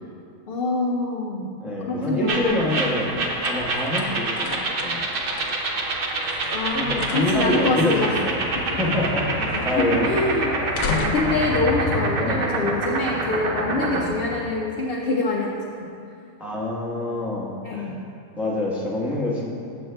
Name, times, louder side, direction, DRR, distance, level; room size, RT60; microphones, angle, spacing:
voice 1, 0.5-1.5 1.9-2.7 6.5-8.2 8.5-8.6 9.5-10.6 10.8-15.9 17.6-18.0, left 2 dB, 60° left, -1 dB, 0.6 m, -25 dB
voice 2, 1.6-3.2 3.5-5.0 6.7-8.5 8.8-10.1 12.2-12.8 13.6-14.1 16.4-17.9 18.4-19.5, left 2 dB, ahead, -4 dB, 0.7 m, -26 dB
sound 1, 2.1-12.8, left 4 dB, 80° left, 1.1 m, -36 dB
sound 2, 2.3-14.1, right 2 dB, 55° right, 0.7 m, -27 dB
sound 3, 7.6-14.9, left 1 dB, 25° left, 1.0 m, -33 dB
7.1 x 6.8 x 3.3 m, 2.5 s
omnidirectional pair, 1.4 m